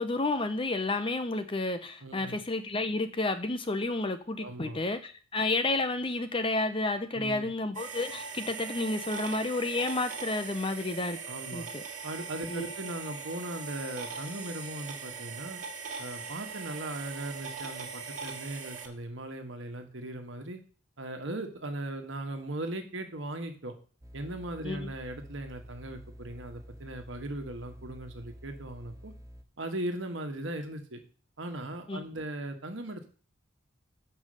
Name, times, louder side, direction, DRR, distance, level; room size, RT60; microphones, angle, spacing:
voice 1, 0.0-11.2 11.5-11.8 12.5-12.7 24.6-24.9 31.9-32.0, left 2 dB, 25° left, 9 dB, 0.7 m, -31 dB
voice 2, 2.0-2.4 4.4-4.8 7.1-7.5 11.3-11.7 12.0-15.6 16.0-20.6 21.0-23.7 24.1-29.1 29.6-31.0 31.4-33.1, right 1 dB, 65° right, 5 dB, 1.5 m, -38 dB
sound 1, 7.7-18.9, right 5 dB, 35° right, 1.8 m, -40 dB
sound 2, 24.0-29.4, equal, 15° right, 0.7 m, -49 dB
7.2 x 5.4 x 6.4 m, 0.39 s
head